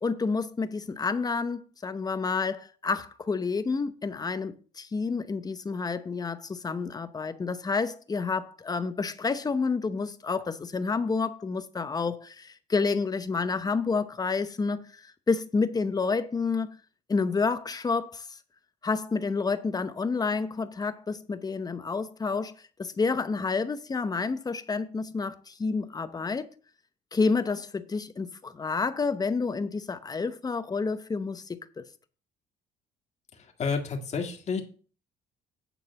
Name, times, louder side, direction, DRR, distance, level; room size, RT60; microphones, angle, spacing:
voice 1, 0.0-16.8 17.1-18.4 18.8-22.5 22.8-26.5 27.1-31.8, left 4 dB, 20° left, 0.8 m, -29 dB
voice 2, 33.3-34.6, left 5 dB, 40° left, 1.9 m, -30 dB
9.3 x 3.9 x 6.9 m
cardioid pair, 110°, 17 cm